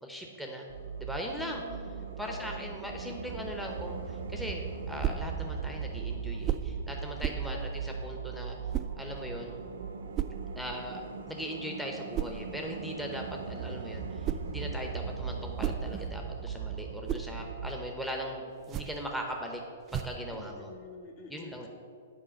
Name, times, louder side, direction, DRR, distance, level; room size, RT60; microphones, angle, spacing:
voice 1, 0.0-0.7 1.0-1.6 2.2-8.6 9.0-9.6 10.6-11.0 11.3-19.6 19.9-20.7 21.3-21.7, equal, ahead, 1 dB, 0.8 m, -39 dB
sound 1, 0.7-17.8, right 6 dB, 80° right, 0.7 m, -39 dB
voice 2, 1.4-2.6 7.4-7.6 20.3-21.7, left 4 dB, 50° left, 3 dB, 1.3 m, -47 dB
sound 2, 5.0-5.3 6.4-6.8 7.2-7.5 8.7-9.0 10.1-10.4 12.1-12.4 14.0-14.6 15.3-16.3 16.8-17.3 18.6-19.1 19.9-20.3, right 11 dB, 30° right, 0.3 m, -34 dB
7.5 x 4.8 x 7.1 m, 2.4 s
hypercardioid pair, 130°, 0 cm